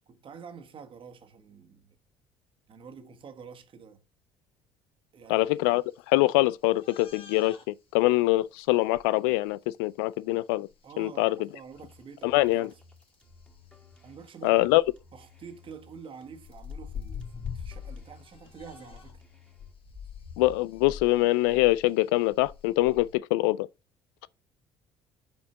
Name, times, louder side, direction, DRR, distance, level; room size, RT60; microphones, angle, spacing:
voice 1, 0.0-1.9 2.7-4.0 5.1-5.5 10.8-12.8 14.0-14.8 15.1-19.2, right 6 dB, 50° right, 1.5 m, -47 dB
voice 2, 5.3-10.7 11.0-11.4 12.2-12.7 14.4-14.8 20.4-23.7, left 19 dB, 80° left, 0.4 m, -24 dB
sound 1, 6.8-7.6 8.9-9.0 10.7-10.8 11.7-11.8 13.3-13.6 14.1-14.2 14.6-15.0 16.4-19.2 19.6-23.1, left 7 dB, 50° left, 1.9 m, -42 dB
sound 2, 11.7-19.7, left 3 dB, 10° left, 2.2 m, -56 dB
5.6 x 4.4 x 5.8 m
hypercardioid pair, 65°, 12 cm